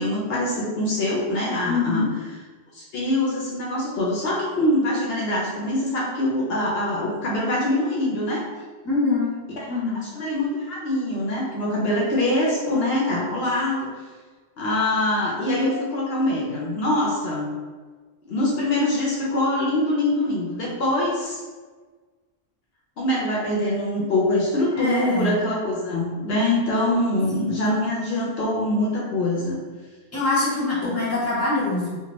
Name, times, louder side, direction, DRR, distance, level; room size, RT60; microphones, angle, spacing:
voice 1, 0.0-2.1 2.7-8.5 9.6-9.7 10.0-13.9 14.6-17.5 18.3-21.4 23.0-29.6, left 1 dB, 70° left, -4 dB, 0.8 m, -24 dB
voice 2, 1.7-2.1 8.8-9.3 9.7-10.0 24.8-25.4 27.3-27.6 30.1-31.9, left 3 dB, 15° left, -8 dB, 0.7 m, -24 dB
2.7 x 2.1 x 2.9 m, 1.4 s
omnidirectional pair, 1.1 m